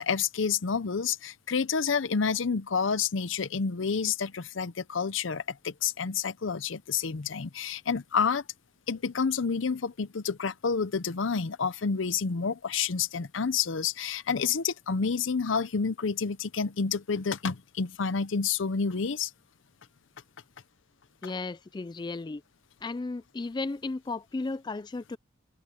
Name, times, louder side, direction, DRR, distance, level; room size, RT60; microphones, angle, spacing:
voice 1, 0.0-8.4 8.9-19.3, left 5 dB, 70° left, 0.7 m, -29 dB
voice 2, 21.2-22.4 22.8-25.2, left 3 dB, 20° left, 0.3 m, -34 dB
open air
head